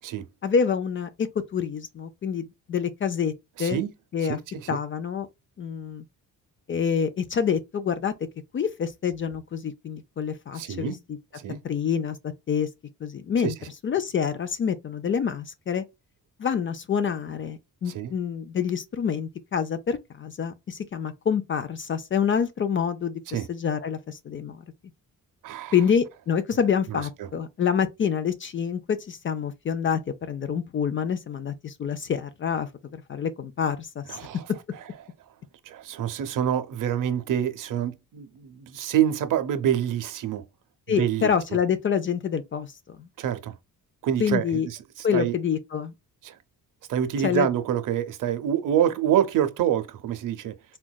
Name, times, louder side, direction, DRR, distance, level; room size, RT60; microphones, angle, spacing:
voice 1, 0.4-3.3 3.6-3.8 4.1-4.4 4.7-5.3 5.6-6.0 6.7-8.1 8.5-11.2 11.6-12.2 12.5-12.7 13.0-13.5 13.8-15.8 16.4-24.6 25.7-30.0 30.3-34.2 40.9-43.1 44.2-44.7 45.0-45.9 47.2-47.5, left 7 dB, 35° left, 0.4 m, -27 dB
voice 2, 3.6-3.9 4.3-4.8 10.5-11.0 11.3-11.6 13.4-13.5 17.9-18.1 23.3-23.5 25.4-25.7 26.9-27.3 34.1-34.5 35.7-40.4 40.9-41.3 43.2-43.6 44.0-45.3 46.2-46.4 46.9-50.5, right 10 dB, 65° right, 0.6 m, -26 dB
3.8 x 2.2 x 2.2 m
cardioid pair, 110°, 35 cm